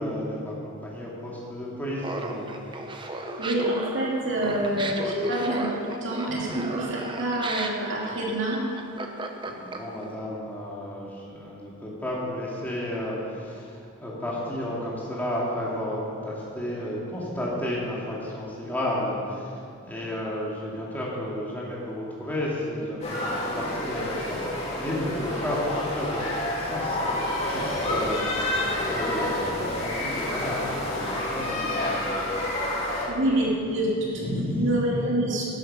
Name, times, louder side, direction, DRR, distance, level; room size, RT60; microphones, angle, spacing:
voice 1, 0.0-2.5 3.0-3.2 6.3-6.5 9.5-26.2 26.5-27.2 27.5-32.3 32.6-33.0 34.2-34.7, left 1 dB, 10° left, -6 dB, 2.5 m, -32 dB
Laughter, 2.0-10.0, right 2 dB, 25° right, 0.8 m, -35 dB
voice 2, 3.4-8.6 33.1-34.2 34.5-35.4, right 1 dB, 60° right, -4 dB, 2.8 m, -27 dB
sound 1, 23.0-33.1, left 1 dB, 30° left, 2.9 m, -29 dB
11.5 x 11.5 x 5.6 m, 2.4 s
head